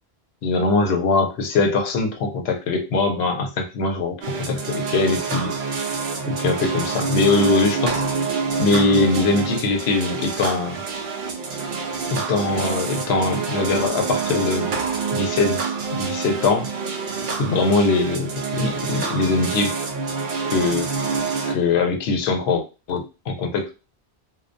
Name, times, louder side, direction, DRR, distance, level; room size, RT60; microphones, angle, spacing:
voice 1, 0.4-5.5 6.3-8.0 8.6-10.8 12.1-14.7 15.1-15.6 15.9-16.7 17.4-19.8 20.5-20.9 21.5-23.7, left 3 dB, 75° left, 4 dB, 0.8 m, -22 dB
sound 1, 4.2-21.5, right 5 dB, 60° right, 0.6 m, -27 dB
2.2 x 2.1 x 2.5 m, 0.29 s
omnidirectional pair, 1.1 m